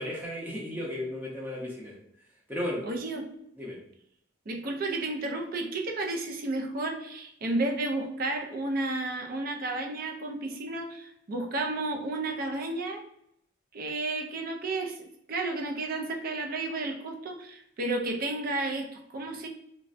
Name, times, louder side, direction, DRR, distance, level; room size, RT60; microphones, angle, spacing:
voice 1, 0.0-2.0 2.5-2.9 3.6-3.8, left 1 dB, 10° right, -4 dB, 0.7 m, -34 dB
voice 2, 2.8-3.2 4.5-13.0 13.7-15.0 15.3-19.5, right 2 dB, 50° right, 2 dB, 0.4 m, -32 dB
3.2 x 2.2 x 2.5 m, 0.74 s
head